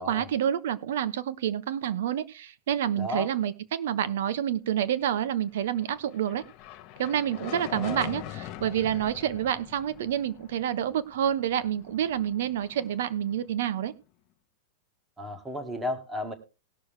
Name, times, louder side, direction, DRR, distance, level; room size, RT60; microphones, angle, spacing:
voice 1, 0.0-6.4 7.0-13.9, right 10 dB, 60° right, 15 dB, 1.0 m, -28 dB
voice 2, 3.0-3.3 7.7-8.0 15.2-16.3, left 1 dB, 5° right, 7 dB, 1.3 m, -33 dB
sound 1, 5.5-13.9, left 13 dB, 25° left, 1.0 m, -43 dB
19.5 x 6.6 x 3.3 m, 0.31 s
supercardioid pair, 180°, 0 cm